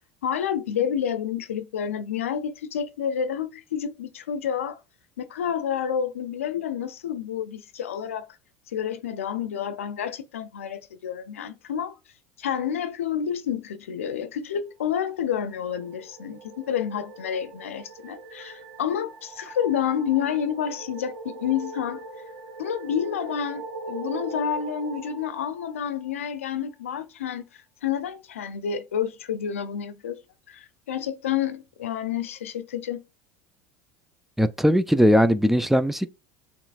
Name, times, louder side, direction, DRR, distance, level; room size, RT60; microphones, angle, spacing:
voice 1, 0.2-4.8 5.2-8.3 8.7-11.9 12.4-22.0 22.6-27.4 27.8-30.2 30.5-33.0, left 8 dB, 85° left, 0.6 m, -29 dB
sound 1, 15.2-26.7, right 3 dB, 55° right, 1.9 m, -41 dB
voice 2, 34.4-36.1, equal, 5° right, 0.5 m, -19 dB
7.0 x 3.1 x 2.4 m
hypercardioid pair, 80°, 7 cm